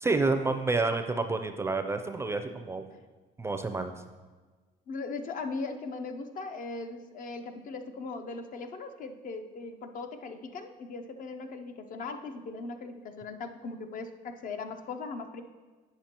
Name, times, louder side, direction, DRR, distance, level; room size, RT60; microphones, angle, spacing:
voice 1, 0.0-2.9 3.4-3.9, right 3 dB, 15° right, 7 dB, 0.4 m, -29 dB
voice 2, 4.9-15.4, left 3 dB, 50° left, 7 dB, 0.5 m, -39 dB
8.7 x 5.8 x 2.9 m, 1.4 s
cardioid pair, 110°, 17 cm